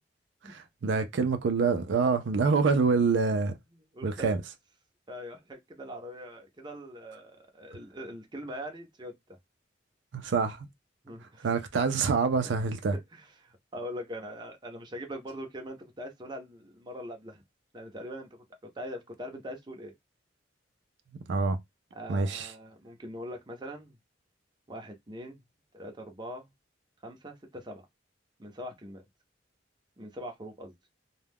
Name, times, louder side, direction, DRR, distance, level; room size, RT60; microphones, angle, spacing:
voice 1, 0.4-3.5 4.0-4.4 10.1-10.7 11.4-12.9 21.3-21.6 22.1-22.5, right 4 dB, 75° right, 0.4 m, -26 dB
voice 2, 3.7-4.4 5.1-9.1 11.0-11.5 12.4-17.4 17.7-18.4 18.7-19.9 21.9-24.0 24.7-25.4 25.7-26.5 27.0-27.8 28.4-29.0 30.0-30.7, equal, 25° right, 0.6 m, -42 dB
2.3 x 2.1 x 3.3 m
head